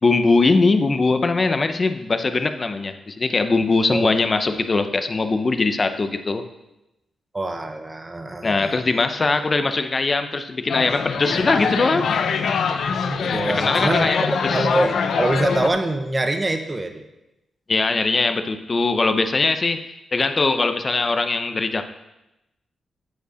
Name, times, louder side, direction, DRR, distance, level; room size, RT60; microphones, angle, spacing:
voice 1, 0.0-6.4 8.4-12.1 13.6-14.7 17.7-19.8 20.1-21.8, left 3 dB, 35° left, 9 dB, 0.7 m, -21 dB
voice 2, 7.3-8.9 13.0-17.1, right 2 dB, 20° right, 6 dB, 0.9 m, -25 dB
sound 1, 10.7-15.7, left 6 dB, 70° left, 0.6 m, -23 dB
9.0 x 5.5 x 6.3 m, 0.95 s
cardioid pair, 100°, 0 cm